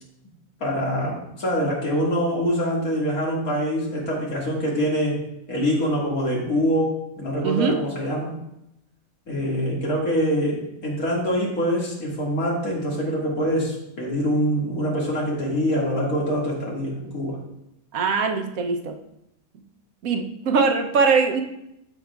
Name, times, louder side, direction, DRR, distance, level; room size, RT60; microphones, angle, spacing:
voice 1, 0.6-5.2 5.5-8.3 9.3-17.4, equal, 85° left, -4 dB, 2.5 m, -24 dB
voice 2, 7.4-7.7 17.9-18.9 20.0-21.4, right 5 dB, 80° right, 4 dB, 1.2 m, -21 dB
13.5 x 5.0 x 2.3 m, 0.82 s
omnidirectional pair, 1.5 m